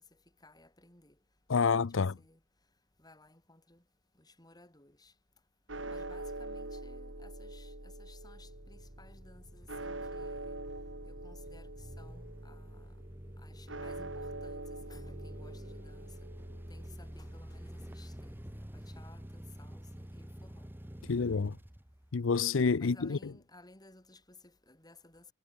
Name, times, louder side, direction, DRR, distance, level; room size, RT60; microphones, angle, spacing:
voice 1, 0.4-1.2 1.6-2.4 3.0-3.8 4.2-5.1 5.9-10.6 11.0-12.9 13.4-16.3 16.7-20.7 22.8-25.3, left 2 dB, 20° left, 7.3 m, -58 dB
voice 2, 1.5-2.2 21.1-21.6 22.1-23.2, left 5 dB, 80° left, 0.6 m, -28 dB
sound 1, 5.7-19.9, right 2 dB, 75° right, 5.2 m, -45 dB
sound 2, 8.2-22.6, equal, 10° right, 1.2 m, -49 dB
head